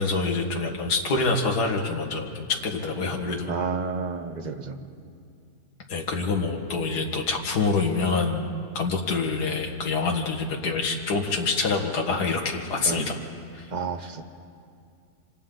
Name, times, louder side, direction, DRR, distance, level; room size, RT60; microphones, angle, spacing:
voice 1, 0.0-3.6 5.9-13.1 13.5-13.7, left 4 dB, 85° left, 1 dB, 2.2 m, -26 dB
voice 2, 3.5-4.8 12.8-13.0 13.7-14.2, right 4 dB, 30° right, 6 dB, 1.1 m, -30 dB
27.0 x 26.5 x 3.9 m, 2.4 s
omnidirectional pair, 1.7 m